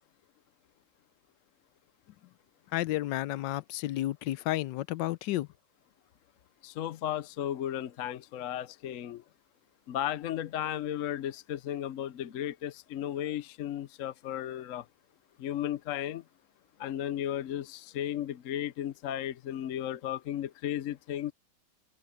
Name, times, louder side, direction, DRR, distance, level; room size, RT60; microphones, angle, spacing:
voice 1, 2.7-5.5, left 15 dB, 85° left, 1.3 m, -31 dB
voice 2, 6.6-9.2 9.9-14.8 15.4-16.2 16.8-21.3, left 11 dB, 60° left, 0.9 m, -35 dB
omnidirectional pair, 1.9 m